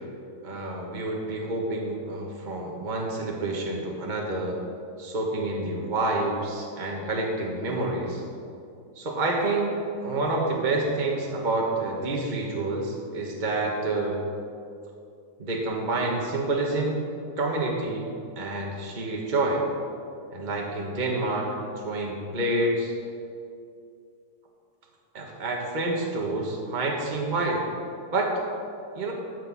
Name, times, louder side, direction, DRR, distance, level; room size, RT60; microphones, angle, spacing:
voice 1, 0.4-4.6 5.0-8.2 9.0-14.2 15.4-17.0 17.4-18.1 18.4-19.6 20.3-22.9 25.1-27.6 28.1-28.3 28.9-29.1, right 2 dB, 30° right, -1 dB, 1.4 m, -28 dB
12.0 x 6.8 x 6.1 m, 2.4 s
omnidirectional pair, 1.6 m